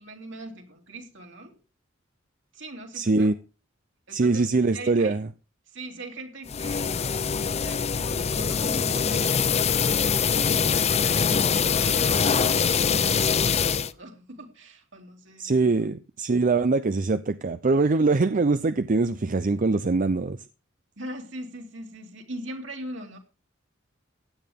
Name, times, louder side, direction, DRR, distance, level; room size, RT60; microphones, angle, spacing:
voice 1, 0.0-1.6 2.5-3.3 4.1-5.2 5.7-15.9 21.0-23.2, right 1 dB, 65° right, 3.1 m, -41 dB
voice 2, 2.9-3.3 4.1-5.3 15.4-20.4, right 3 dB, 45° right, 0.5 m, -23 dB
sound 1, 6.5-13.9, left 6 dB, 35° left, 0.5 m, -23 dB
16.0 x 10.5 x 3.7 m
head